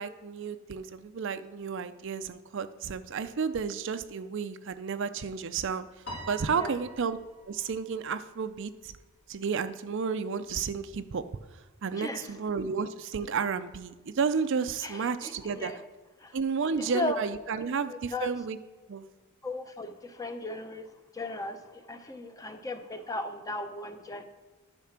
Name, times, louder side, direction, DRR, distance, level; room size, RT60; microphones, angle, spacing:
voice 1, 0.0-5.9 6.3-7.2 7.5-8.9 9.3-11.2 11.8-15.7 16.3-18.6 18.9-19.0, right 5 dB, 55° right, 11 dB, 0.4 m, -32 dB
Piano, 6.1-8.6, right 1 dB, 60° left, 2.3 m, -45 dB
voice 2, 11.9-12.3 14.8-15.8 16.2-16.4 16.8-17.2 17.6-18.3 19.4-24.2, left 2 dB, 15° left, 7 dB, 0.6 m, -37 dB
10.5 x 5.8 x 5.8 m, 1.2 s
head